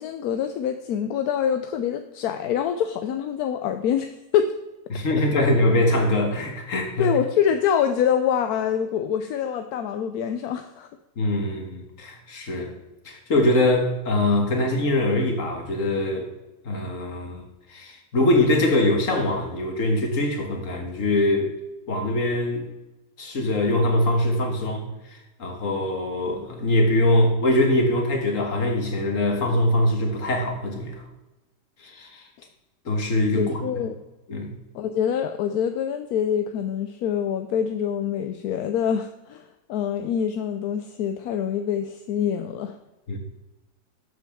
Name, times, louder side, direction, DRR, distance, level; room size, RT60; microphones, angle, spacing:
voice 1, 0.0-4.5 7.0-10.9 33.4-34.0 34.7-42.8, left 8 dB, 80° left, 8 dB, 1.1 m, -25 dB
voice 2, 4.9-7.1 11.2-12.7 13.1-16.3 16.7-17.4 17.7-21.5 21.9-22.6 23.2-31.0 31.8-32.2 32.9-33.6 34.3-34.5 43.1-43.2, left 1 dB, 55° left, 3 dB, 1.9 m, -23 dB
12.0 x 7.5 x 3.6 m, 1.0 s
omnidirectional pair, 1.7 m